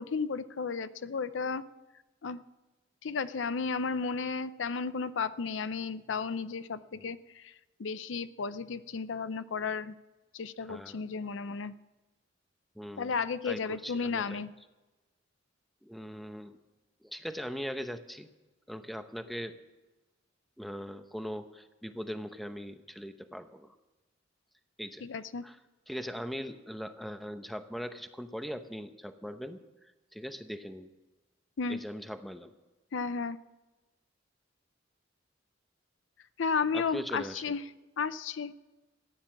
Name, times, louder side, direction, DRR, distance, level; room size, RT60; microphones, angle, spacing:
voice 1, 0.0-1.6 2.2-2.4 3.0-7.5 7.8-9.9 10.3-11.7 13.0-14.5 25.0-25.4 31.6-31.8 32.9-33.4 36.4-37.6 38.0-38.5, left 5 dB, 75° left, 14 dB, 0.5 m, -33 dB
voice 2, 10.6-11.0 12.8-13.1 13.4-14.4 15.8-16.6 17.0-18.3 18.7-19.6 20.6-23.7 24.8-25.0 25.4-25.6 25.9-29.6 30.1-30.9 31.7-32.5 36.7-37.4, equal, ahead, 8 dB, 0.8 m, -40 dB
15.0 x 9.8 x 7.4 m, 1.1 s
head